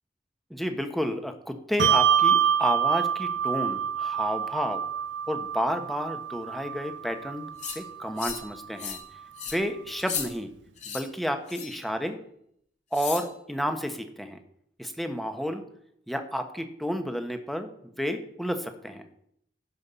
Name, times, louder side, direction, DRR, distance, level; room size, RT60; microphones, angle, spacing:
voice 1, 0.5-4.8 5.3-9.0 9.5-10.5 10.9-12.2 12.9-14.4 14.8-15.6 16.1-19.0, equal, ahead, 6 dB, 1.3 m, -31 dB
Bell, 1.8-8.7, right 8 dB, 80° right, 0.5 m, -26 dB
sound 1, 7.6-7.8 8.2-8.5 8.8-9.0 9.4-9.6 10.0-10.3 10.8-11.0 11.5-11.8 12.9-13.3, left 7 dB, 45° left, 2.8 m, -35 dB
16.5 x 5.8 x 7.0 m, 0.72 s
head